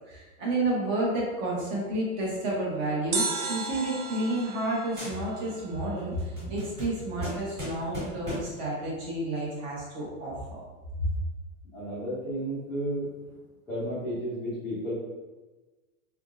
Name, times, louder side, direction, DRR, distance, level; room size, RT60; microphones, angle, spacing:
voice 1, 0.1-10.3 11.0-11.1, right 1 dB, 30° right, -4 dB, 1.0 m, -30 dB
sound 1, 3.1-6.2 6.5-6.6, right 4 dB, 70° right, 0.8 m, -34 dB
sound 2, 3.3-4.7 5.0-5.6 6.0-8.7, left 1 dB, 15° right, 1.4 m, -40 dB
voice 2, 11.7-13.1 13.7-14.9, equal, 5° left, -15 dB, 0.6 m, -33 dB
4.0 x 3.5 x 2.4 m, 1.2 s
supercardioid pair, 170°, 45 cm